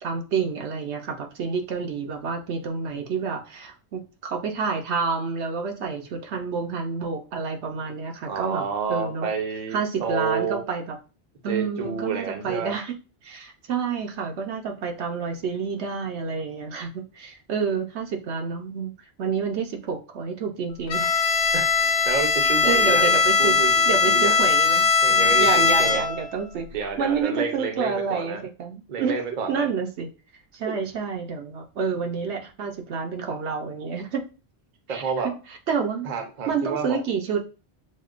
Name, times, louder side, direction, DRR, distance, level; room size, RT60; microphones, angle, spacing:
voice 1, 0.0-8.6 8.9-9.3 9.7-11.0 11.4-13.0 13.2-21.1 22.4-26.7 27.0-29.2 29.5-30.1 30.5-34.2 34.9-35.3 35.7-36.1 36.5-37.4, right 5 dB, 75° right, 2 dB, 1.0 m, -29 dB
voice 2, 8.3-10.6 11.5-12.7 21.5-24.4 25.0-26.0 26.7-28.4 28.9-29.7 34.9-35.3 36.0-37.0, right 5 dB, 45° right, 5 dB, 0.7 m, -29 dB
Bowed string instrument, 20.9-26.3, left 5 dB, 80° left, 0.9 m, -20 dB
6.3 x 2.2 x 2.4 m, 0.32 s
omnidirectional pair, 1.2 m